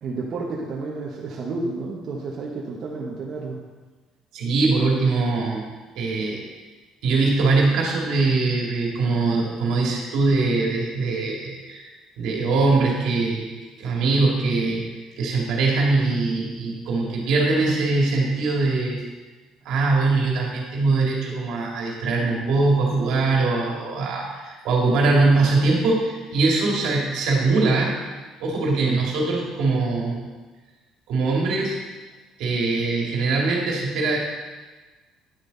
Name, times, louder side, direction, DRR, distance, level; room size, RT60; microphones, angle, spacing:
voice 1, 0.0-3.6 22.9-23.3 28.8-29.0, right 3 dB, 45° right, -4 dB, 1.3 m, -31 dB
voice 2, 4.3-5.6 5.9-6.4 7.0-11.9 12.2-13.5 13.8-14.8 15.2-19.0 19.6-28.0 28.4-30.2 31.1-31.8 32.4-34.2, right 3 dB, 70° right, -1 dB, 2.2 m, -22 dB
10.5 x 6.3 x 4.0 m, 1.3 s
cardioid pair, 105°, 0 cm